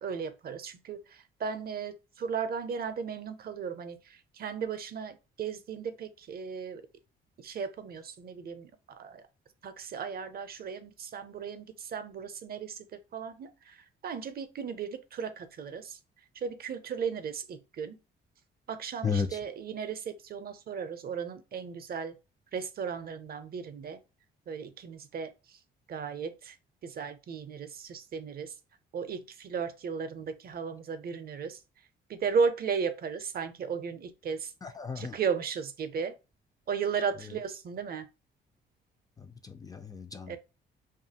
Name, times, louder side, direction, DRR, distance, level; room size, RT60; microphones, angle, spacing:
voice 1, 0.0-1.0 1.4-6.8 7.4-9.2 9.6-13.8 14.0-16.0 16.4-18.0 18.7-22.1 22.5-24.0 24.5-25.3 25.9-26.5 26.8-28.5 28.9-31.6 32.1-34.5 35.0-36.1 36.7-38.0 40.3-40.4, right 6 dB, 50° right, 0.5 m, -35 dB
voice 2, 19.0-19.4 34.6-35.2 39.2-40.4, left 5 dB, 20° left, 0.3 m, -34 dB
2.6 x 2.4 x 2.7 m
cardioid pair, 90°, 20 cm